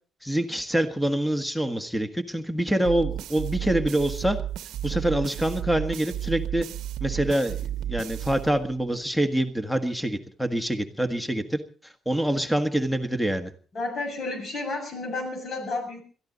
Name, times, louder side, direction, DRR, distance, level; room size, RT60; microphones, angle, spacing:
voice 1, 0.2-4.4 4.8-6.7 7.0-13.5, right 1 dB, 5° left, 8 dB, 1.6 m, -26 dB
sound 1, 2.8-9.0, right 11 dB, 85° right, 0.8 m, -33 dB
voice 2, 13.7-16.0, left 2 dB, 50° left, 6 dB, 7.1 m, -31 dB
22.0 x 14.0 x 4.0 m, 0.40 s
cardioid pair, 90°, 0 cm